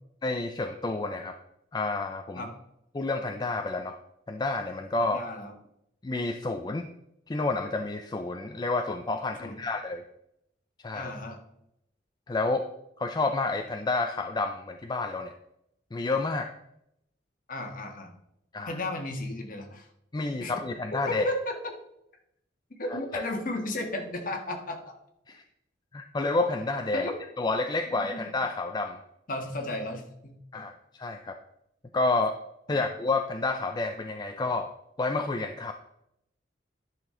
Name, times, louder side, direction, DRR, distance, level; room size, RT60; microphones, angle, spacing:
voice 1, 0.2-1.4 1.7-2.4 2.9-4.0 4.3-5.2 6.0-6.9 7.3-10.0 10.8-11.1 12.3-12.7 13.0-15.3 15.9-16.5 18.5-18.8 20.1-21.2 23.1-23.2 25.3-25.4 25.9-27.1 27.4-29.0 30.5-31.4 31.9-32.4 32.7-34.7 35.0-35.7, left 3 dB, 20° left, 6 dB, 0.4 m, -29 dB
voice 2, 5.0-5.5 9.4-9.6 10.9-11.4 17.5-18.1 18.6-19.9 20.4-20.5 20.9-21.7 22.8-24.9 26.9-27.2 27.9-28.1 29.3-30.6 32.7-32.8, left 1 dB, 45° left, 3 dB, 1.5 m, -34 dB
10.5 x 6.0 x 3.7 m, 0.80 s
head